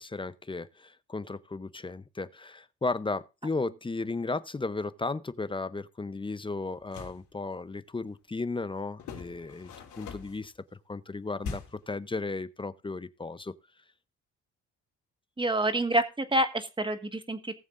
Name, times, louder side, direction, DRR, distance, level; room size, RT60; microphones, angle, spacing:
voice 1, 0.0-9.7 10.0-10.5 10.9-13.5, left 3 dB, 15° left, 0.7 m, -35 dB
sound 1, 6.7-7.2 9.0-10.5 11.4-11.9, left 5 dB, 80° left, 3.3 m, -41 dB
voice 2, 15.4-17.5, right 1 dB, 15° right, 1.5 m, -27 dB
19.0 x 7.2 x 2.6 m
cardioid pair, 90°, 30 cm